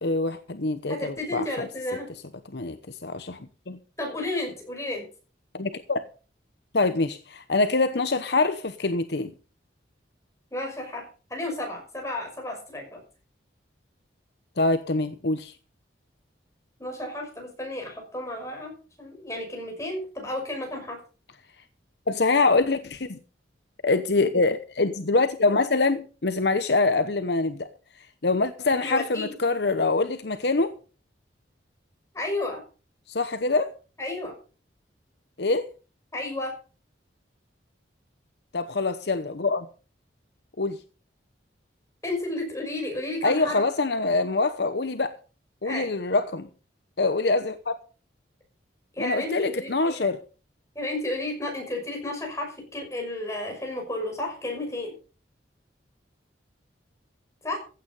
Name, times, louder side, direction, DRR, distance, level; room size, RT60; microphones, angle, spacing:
voice 1, 0.0-1.4 2.5-3.4 3.7-3.8 5.5-6.0 6.7-9.3 14.6-15.5 22.1-23.2 23.8-27.7 28.2-30.8 33.1-33.7 35.4-35.7 38.5-39.7 40.6-40.8 43.2-45.2 45.6-46.5 47.0-47.7 49.0-50.2, left 3 dB, 60° left, 0.9 m, -24 dB
voice 2, 0.9-2.1 4.0-5.1 10.5-13.0 16.8-21.0 28.7-29.3 32.1-32.6 34.0-34.3 36.1-36.6 42.0-43.6 45.6-45.9 48.9-50.1 50.7-55.0 57.4-57.6, left 1 dB, 15° left, 5.8 m, -32 dB
15.5 x 9.2 x 5.4 m
head